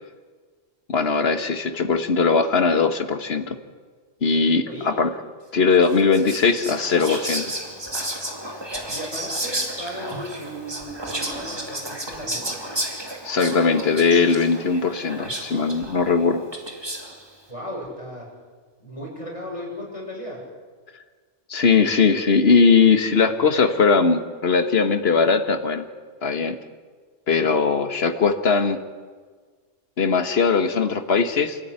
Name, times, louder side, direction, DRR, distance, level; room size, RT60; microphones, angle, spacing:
voice 1, 0.9-3.6 4.2-5.1 5.5-7.5 13.2-16.4 21.5-25.9 26.2-26.6 27.3-28.8 30.0-31.6, left 5 dB, 55° left, 8 dB, 1.7 m, -19 dB
Whispering, 5.8-17.3, right 1 dB, 20° right, 2.7 m, -32 dB
voice 2, 8.9-12.6 17.5-18.3 18.8-20.4, equal, 25° left, -2 dB, 6.9 m, -36 dB
28.0 x 13.5 x 9.8 m, 1.5 s
omnidirectional pair, 1.2 m